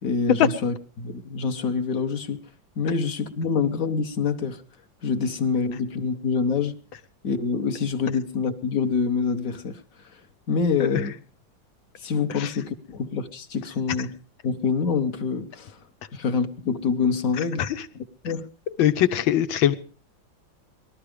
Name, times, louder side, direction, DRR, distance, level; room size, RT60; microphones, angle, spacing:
voice 1, 0.0-2.4 2.8-4.6 5.0-6.7 7.2-9.8 10.5-11.1 12.0-14.2 14.4-15.8 16.1-17.7 18.2-18.5, left 5 dB, 50° left, 1.2 m, -26 dB
voice 2, 18.8-19.7, left 11 dB, 85° left, 1.7 m, -21 dB
19.0 x 13.0 x 4.9 m
omnidirectional pair, 2.1 m